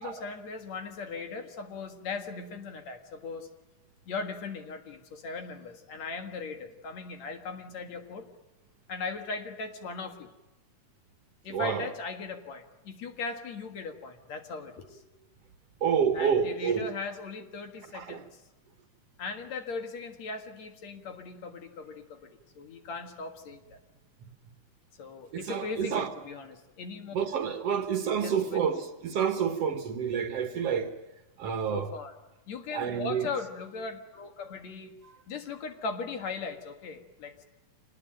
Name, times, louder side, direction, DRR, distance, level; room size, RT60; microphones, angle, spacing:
voice 1, 0.0-3.5 4.1-8.3 8.9-10.3 11.4-15.1 16.1-18.4 19.2-22.3 22.6-23.8 25.0-27.1 28.2-28.6 31.4-32.1 32.5-35.0 35.3-37.4, left 4 dB, 65° left, 2.9 m, -38 dB
voice 2, 11.5-11.9 15.8-16.9 17.9-18.2 25.3-26.1 27.1-31.0 31.4-31.9 32.7-33.3 35.0-35.1, right 7 dB, 60° right, 2.0 m, -29 dB
25.5 x 19.5 x 9.0 m
omnidirectional pair, 3.5 m